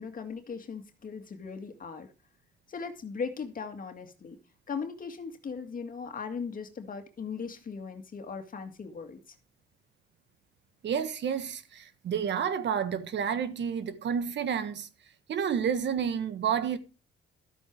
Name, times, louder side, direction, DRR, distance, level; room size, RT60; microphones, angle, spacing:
voice 1, 0.0-2.1 2.7-4.4 4.7-9.2, left 5 dB, 45° left, 2.0 m, -38 dB
voice 2, 10.8-14.9 15.3-16.8, right 7 dB, 65° right, 1.6 m, -30 dB
13.0 x 8.3 x 4.7 m
cardioid pair, 90°, 20 cm